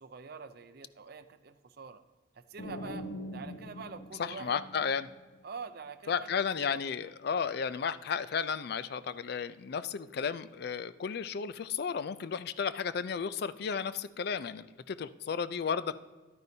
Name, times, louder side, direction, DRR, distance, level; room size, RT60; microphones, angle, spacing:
voice 1, 0.0-2.0 2.3-3.0 3.3-4.6 5.4-7.1, right 5 dB, 55° right, 9 dB, 0.5 m, -46 dB
sound 1, 2.6-5.4, equal, 75° left, 0.9 m, -43 dB
voice 2, 4.2-5.1 6.1-15.9, left 6 dB, 55° left, 14 dB, 0.4 m, -33 dB
10.5 x 9.5 x 2.7 m, 1.3 s
head